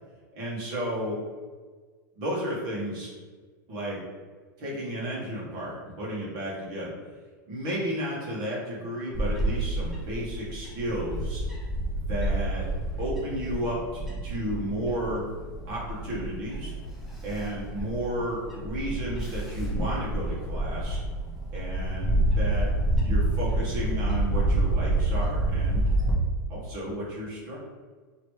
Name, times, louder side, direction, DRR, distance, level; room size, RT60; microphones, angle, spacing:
voice 1, 0.3-1.2 2.2-3.1 3.7-4.0 4.6-6.9 7.5-11.4 11.9-12.7 13.0-13.8 14.2-15.2 15.7-16.7 17.2-21.0 21.5-22.7 23.0-25.8 26.5-27.6, equal, 40° right, -5 dB, 1.4 m, -33 dB
Bird / Wind, 9.1-26.1, right 1 dB, ahead, 0.7 m, -28 dB
3.0 x 2.9 x 3.1 m, 1.4 s
supercardioid pair, 150°, 11 cm